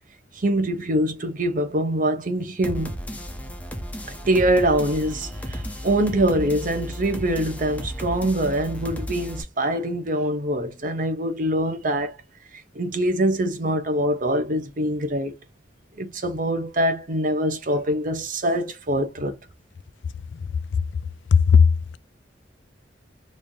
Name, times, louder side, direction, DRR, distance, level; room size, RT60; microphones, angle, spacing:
voice 1, 0.3-2.9 4.1-12.2 12.5-15.3 16.0-19.4, right 1 dB, 50° right, 0.8 m, -24 dB
sound 1, 2.6-9.4, equal, 10° left, 0.6 m, -34 dB
voice 2, 21.3-22.0, left 6 dB, 75° left, 0.3 m, -16 dB
3.2 x 2.7 x 3.6 m
head